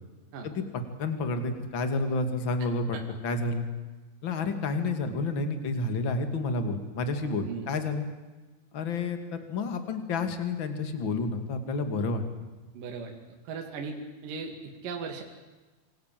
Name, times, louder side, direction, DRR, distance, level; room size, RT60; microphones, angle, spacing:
voice 1, 1.0-3.0 3.2-3.7 4.2-8.1 8.7-9.2 9.5-12.2, left 3 dB, 35° left, 8 dB, 2.3 m, -30 dB
voice 2, 12.7-14.0 14.2-15.2, right 5 dB, 55° right, 3 dB, 3.5 m, -38 dB
27.0 x 25.5 x 7.7 m, 1.2 s
omnidirectional pair, 5.2 m